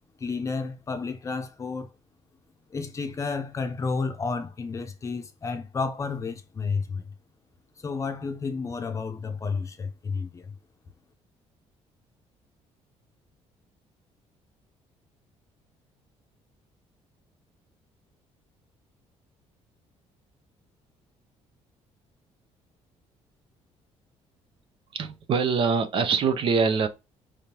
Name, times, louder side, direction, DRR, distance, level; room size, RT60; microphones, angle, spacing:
voice 1, 0.2-1.9 2.7-7.0 7.8-10.5, left 4 dB, 25° left, 0.7 m, -31 dB
voice 2, 24.9-26.9, right 5 dB, 50° right, 0.7 m, -24 dB
4.8 x 3.5 x 2.9 m
cardioid pair, 140°, 12 cm